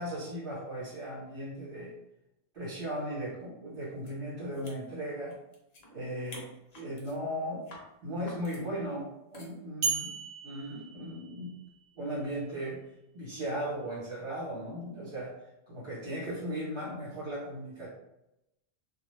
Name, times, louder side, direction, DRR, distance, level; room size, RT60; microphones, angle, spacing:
voice 1, 0.0-1.9 2.5-5.3 5.9-6.5 6.7-7.6 8.0-10.1 10.4-11.5 12.0-12.8 13.1-15.3 15.7-17.9, equal, 60° right, -9 dB, 1.1 m, -37 dB
sound 1, 4.1-4.2 4.5-5.9 6.2-7.2 7.6-7.9 8.3-8.6 9.3-9.6, left 2 dB, 50° left, 0.5 m, -50 dB
sound 2, 9.8-11.9, right 5 dB, 75° right, 0.9 m, -35 dB
2.2 x 2.2 x 3.1 m, 0.89 s
omnidirectional pair, 1.2 m